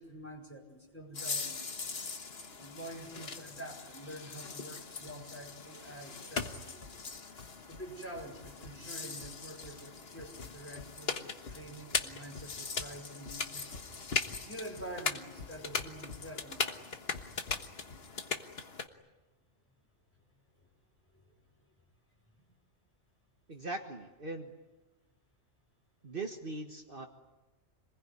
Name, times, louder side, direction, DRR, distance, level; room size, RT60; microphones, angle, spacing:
voice 1, 0.0-1.6 2.6-6.8 7.7-13.8 14.4-16.9 20.6-20.7 21.1-21.2 22.3-22.5, right 1 dB, 10° left, 0 dB, 5.3 m, -47 dB
sound 1, 1.1-18.9, left 4 dB, 60° left, 1.6 m, -39 dB
voice 2, 23.5-24.5 26.0-27.1, right 2 dB, 50° right, 3 dB, 1.7 m, -40 dB
27.0 x 21.0 x 9.7 m, 1.1 s
omnidirectional pair, 1.2 m